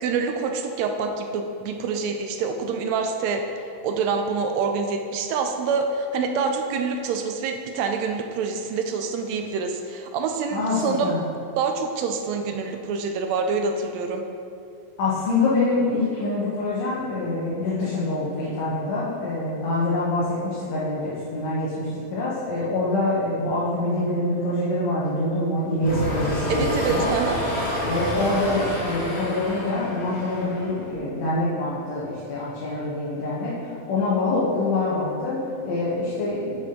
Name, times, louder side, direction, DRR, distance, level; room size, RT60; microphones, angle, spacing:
voice 1, 0.0-3.4 3.8-11.1 11.6-14.2 26.5-27.4, right 5 dB, 80° right, 5 dB, 1.7 m, -26 dB
voice 2, 10.5-11.2 15.0-27.1 27.9-36.6, left 2 dB, 70° left, -8 dB, 2.2 m, -25 dB
sound 1, 25.8-31.0, equal, 30° left, 1.2 m, -29 dB
7.1 x 5.9 x 3.7 m, 2.6 s
omnidirectional pair, 3.4 m